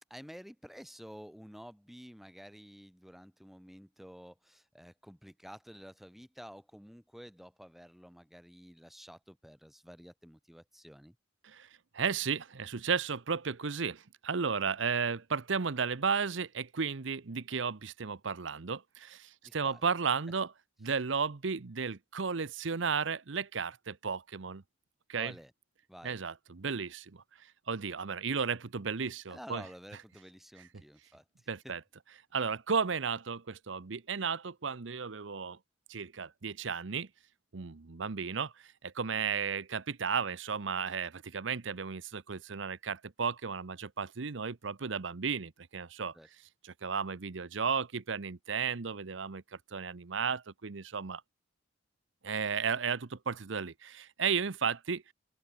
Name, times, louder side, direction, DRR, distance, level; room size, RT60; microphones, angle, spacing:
voice 1, 0.1-11.2 19.4-19.8 25.2-25.5 25.9-26.2 29.3-31.2 31.6-31.7 46.1-46.3, equal, ahead, 1.7 m, -51 dB
voice 2, 11.9-20.5 20.8-24.6 25.1-25.3 26.0-27.2 27.7-29.6 31.5-31.8 32.3-35.6 35.9-37.1 37.5-46.1 46.6-49.4 49.7-51.2 52.2-55.1, right 6 dB, 70° right, 0.8 m, -34 dB
open air
head